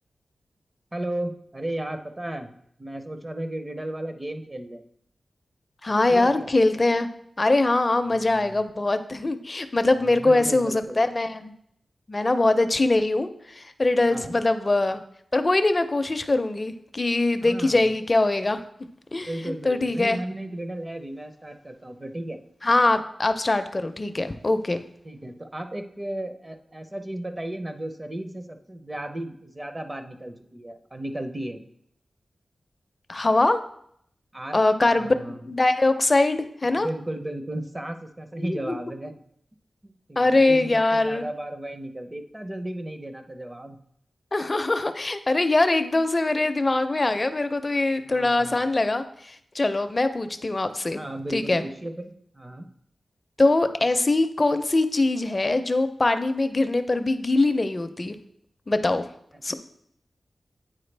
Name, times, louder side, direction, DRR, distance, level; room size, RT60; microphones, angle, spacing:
voice 1, 0.9-2.5 2.8-4.8 5.9-6.5 8.1-8.6 9.9-11.0 14.1-14.4 17.4-18.0 19.2-22.4 25.0-31.6 34.3-34.6 34.9-35.4 36.8-39.1 39.8-43.8 48.0-48.7 50.9-52.7 59.3-59.5, right 1 dB, 25° right, 7 dB, 0.6 m, -35 dB
voice 2, 5.8-7.1 7.4-11.5 12.1-15.0 15.3-18.6 19.1-20.2 22.6-24.8 33.1-33.6 34.5-35.1 35.5-36.9 38.4-38.8 40.2-41.3 44.3-51.0 51.3-51.6 53.4-58.2 58.7-59.1 59.4-59.5, left 2 dB, 30° left, 9 dB, 0.5 m, -22 dB
8.7 x 4.6 x 3.3 m, 0.69 s
wide cardioid pair, 100°, 0 cm